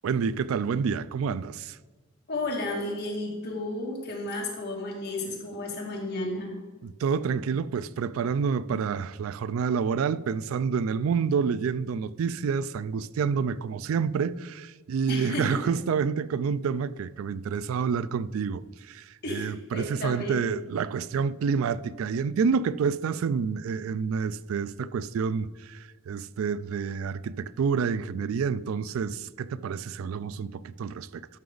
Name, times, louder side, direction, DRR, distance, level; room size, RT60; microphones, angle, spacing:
voice 1, 0.0-1.8 6.8-31.3, right 6 dB, 75° right, 0.3 m, -28 dB
voice 2, 2.3-6.5 15.1-15.6 19.2-20.4, left 2 dB, 50° left, 2.5 m, -33 dB
12.5 x 5.9 x 3.9 m
head